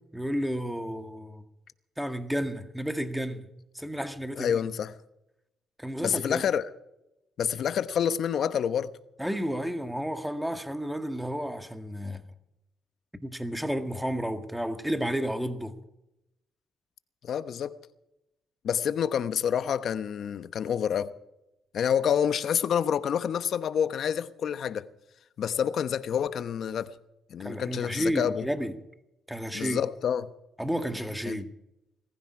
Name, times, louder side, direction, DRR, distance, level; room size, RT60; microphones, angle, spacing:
voice 1, 0.1-1.4 2.0-3.4 3.7-4.6 5.8-6.4 9.2-12.2 13.2-15.8 27.4-28.7 29.3-29.8 30.6-31.5, equal, 5° right, 1.8 m, -31 dB
voice 2, 4.4-5.0 6.0-6.7 7.4-8.9 17.2-17.8 18.6-21.1 21.7-24.9 25.4-26.9 27.3-28.4 29.5-30.3 31.3-31.4, left 8 dB, 65° left, 1.0 m, -28 dB
20.0 x 15.0 x 4.9 m
cardioid pair, 90°, 0 cm